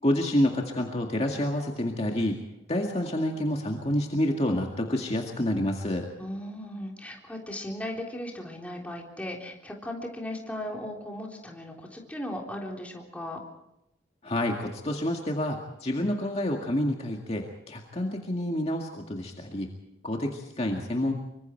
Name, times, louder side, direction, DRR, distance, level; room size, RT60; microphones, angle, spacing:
voice 1, 0.0-2.4 2.7-6.1 14.2-19.7 20.0-21.1, left 1 dB, 35° left, 1 dB, 2.0 m, -28 dB
voice 2, 6.2-13.4, left 1 dB, 10° left, 0 dB, 3.7 m, -37 dB
25.5 x 24.5 x 4.6 m, 0.86 s
head